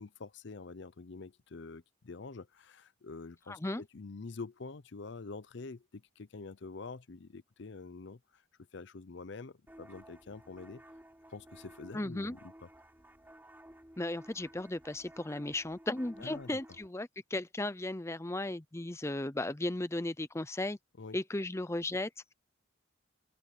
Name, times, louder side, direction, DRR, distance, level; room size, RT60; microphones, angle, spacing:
voice 1, 0.0-8.4 8.7-10.8 11.3-12.7 16.2-16.6 21.0-21.2, left 3 dB, 60° left, 0.6 m, -46 dB
voice 2, 3.5-3.8 11.9-12.3 14.0-20.8 21.1-22.3, left 2 dB, 15° left, 0.6 m, -36 dB
sound 1, 9.7-16.9, right 1 dB, 10° right, 5.7 m, -55 dB
head